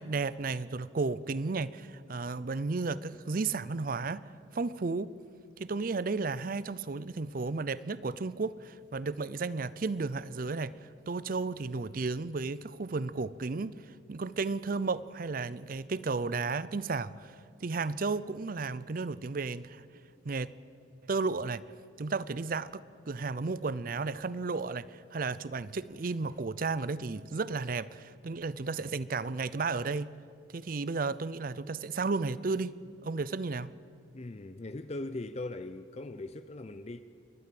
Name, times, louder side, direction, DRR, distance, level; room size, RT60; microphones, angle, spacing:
voice 1, 0.0-4.3 4.5-5.1 5.6-10.8 11.1-13.8 14.1-19.9 20.2-20.5 21.0-21.6 22.0-30.1 30.5-33.7, right 4 dB, 45° right, 0.5 m, -33 dB
voice 2, 34.1-37.0, left 2 dB, 35° left, 0.5 m, -40 dB
30.0 x 13.0 x 7.6 m
head